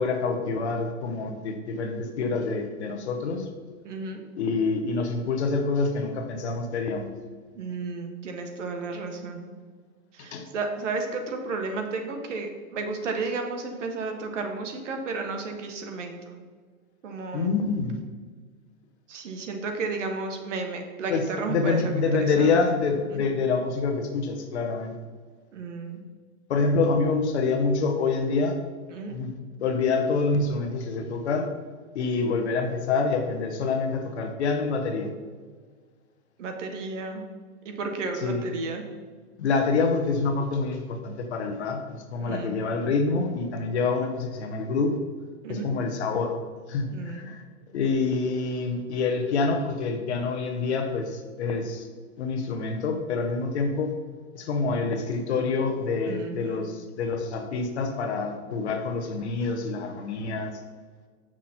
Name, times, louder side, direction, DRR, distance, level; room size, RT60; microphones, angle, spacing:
voice 1, 0.0-3.5 4.4-7.1 10.3-10.5 17.3-18.0 21.1-24.9 26.5-28.6 29.1-29.3 29.6-31.5 31.9-35.1 38.2-38.4 39.4-45.0 45.5-46.4 46.7-47.4 47.7-51.9 52.2-53.9 54.3-60.6, left 4 dB, 50° left, 5 dB, 1.1 m, -26 dB
voice 2, 3.8-4.2 7.6-9.5 10.1-16.4 17.0-17.5 19.1-22.8 23.1-23.3 25.5-26.0 28.9-29.2 36.4-37.2 37.6-38.8 42.2-42.7 45.4-45.8 46.9-47.3 56.0-56.7, right 3 dB, 55° right, 4 dB, 1.4 m, -33 dB
7.3 x 6.1 x 4.4 m, 1.5 s
hypercardioid pair, 155°, 43 cm